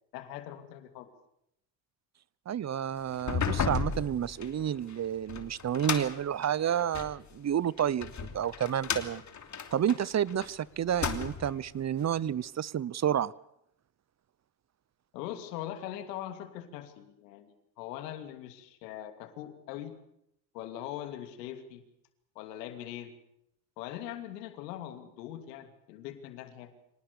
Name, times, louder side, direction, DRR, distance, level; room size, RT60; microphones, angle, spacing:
voice 1, 0.1-1.1 15.1-20.0 20.5-21.8 22.3-23.1 23.8-26.7, left 12 dB, 90° left, 8 dB, 2.9 m, -41 dB
voice 2, 2.5-9.2 9.7-13.3, right 9 dB, 35° right, 23 dB, 0.9 m, -30 dB
sound 1, 3.1-7.2 7.8-10.5 10.8-11.6, left 6 dB, 35° left, 3.1 m, -34 dB
25.5 x 18.5 x 7.0 m, 0.76 s
supercardioid pair, 75°, 48 cm